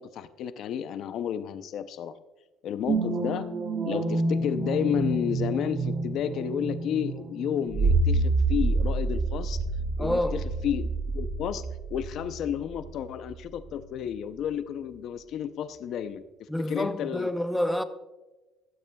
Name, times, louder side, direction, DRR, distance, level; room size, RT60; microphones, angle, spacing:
voice 1, 0.0-2.1 2.6-3.5 3.8-9.6 10.0-17.3, left 9 dB, 60° left, 0.5 m, -32 dB
sound 1, 2.9-13.3 13.7-13.8, right 3 dB, 45° right, 1.7 m, -28 dB
voice 2, 10.0-10.5 16.5-17.8, left 1 dB, 5° left, 0.6 m, -28 dB
14.5 x 12.5 x 2.3 m
cardioid pair, 110°, 0 cm